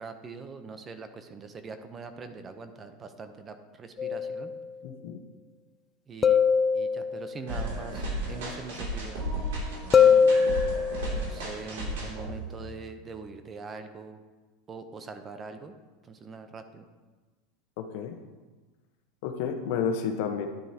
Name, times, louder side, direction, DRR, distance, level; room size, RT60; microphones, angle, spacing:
voice 1, 0.0-4.5 6.1-6.4 6.7-9.3 9.9-10.3 11.1-14.2 14.7-15.8 16.1-16.8, right 4 dB, 25° right, 8 dB, 0.8 m, -42 dB
sound 1, 4.0-4.6 6.2-7.3 9.9-11.2, left 6 dB, 25° left, 0.4 m, -22 dB
voice 2, 4.8-5.2 17.8-18.1 19.2-20.5, left 7 dB, 65° left, 5 dB, 1.1 m, -31 dB
sound 2, 7.5-12.9, right 1 dB, 85° right, 2.9 m, -34 dB
10.5 x 9.3 x 2.9 m, 1.3 s
supercardioid pair, 115°, 0 cm